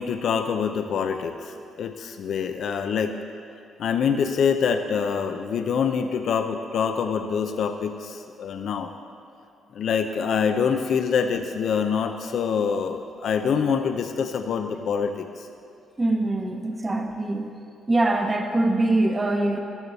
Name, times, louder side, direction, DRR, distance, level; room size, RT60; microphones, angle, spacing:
voice 1, 0.0-3.2 3.8-8.9 9.7-15.5, left 6 dB, 65° left, 7 dB, 0.7 m, -25 dB
voice 2, 16.0-17.5 17.9-19.6, right 2 dB, 25° right, 3 dB, 1.2 m, -23 dB
14.0 x 12.5 x 4.2 m, 2.6 s
cardioid pair, 90°, 0 cm